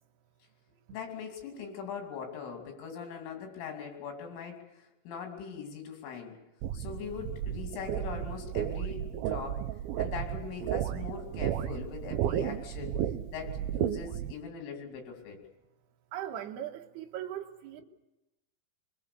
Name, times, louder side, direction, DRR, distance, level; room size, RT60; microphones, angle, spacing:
voice 1, 0.9-6.4 6.7-9.7 10.0-13.0 13.3-15.4, left 6 dB, 90° left, 5.4 m, -41 dB
sound 1, 6.6-14.3, right 11 dB, 85° right, 2.1 m, -33 dB
voice 2, 16.1-17.8, right 11 dB, 65° right, 3.0 m, -39 dB
24.0 x 22.5 x 7.0 m
omnidirectional pair, 5.5 m